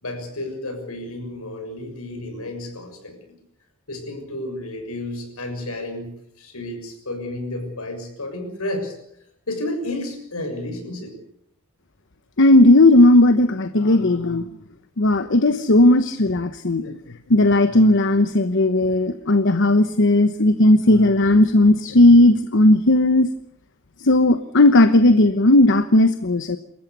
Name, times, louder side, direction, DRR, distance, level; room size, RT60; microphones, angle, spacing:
voice 1, 0.0-3.2 3.9-6.1 6.4-9.0 9.5-11.2, left 1 dB, 75° left, 5 dB, 6.8 m, -31 dB
voice 2, 12.4-14.5 15.0-17.0 17.3-23.3 24.0-26.6, left 1 dB, 60° left, 10 dB, 1.0 m, -15 dB
27.5 x 14.5 x 8.3 m, 0.72 s
head